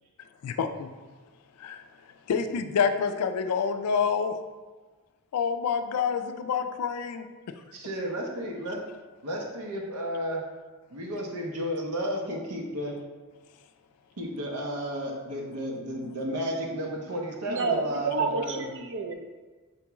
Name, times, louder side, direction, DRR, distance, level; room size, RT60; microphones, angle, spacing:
voice 1, 0.4-0.9 1.6-1.8 2.3-4.4 5.3-7.3 16.0-16.1, left 6 dB, 85° left, 8 dB, 0.3 m, -27 dB
voice 2, 7.7-8.8 9.2-10.4 10.9-13.0 14.2-18.6, equal, 85° right, 0 dB, 0.8 m, -33 dB
voice 3, 17.5-19.1, right 4 dB, 55° right, 4 dB, 0.4 m, -29 dB
4.5 x 2.9 x 3.4 m, 1.3 s
head